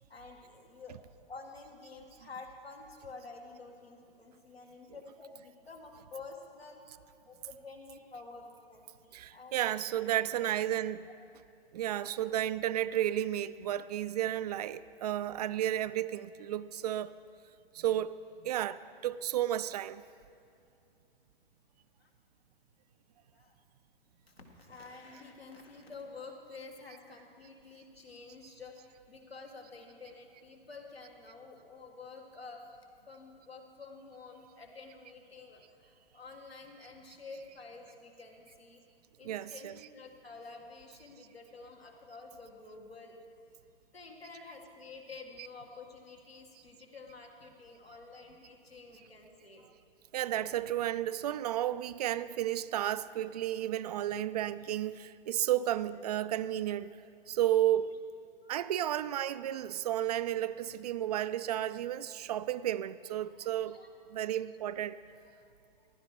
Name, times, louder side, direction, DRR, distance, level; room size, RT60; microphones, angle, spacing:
voice 1, 0.1-1.0 1.3-6.8 7.3-9.6 22.0-22.1 23.3-23.5 24.3-32.6 33.1-38.8 39.2-43.2 43.9-49.7 50.4-50.6 58.4-58.5 63.2-63.9 65.1-65.2 65.8-65.9, left 4 dB, 80° left, 2.0 m, -50 dB
voice 2, 9.1-11.1 11.7-17.1 17.7-18.2 18.4-20.0 39.2-39.8 44.3-44.4 45.1-45.2 50.1-57.0 57.3-57.9 58.5-63.8 64.1-65.0, right 12 dB, 45° right, 0.4 m, -32 dB
15.0 x 12.0 x 4.8 m
figure-of-eight pair, 110°, 30 cm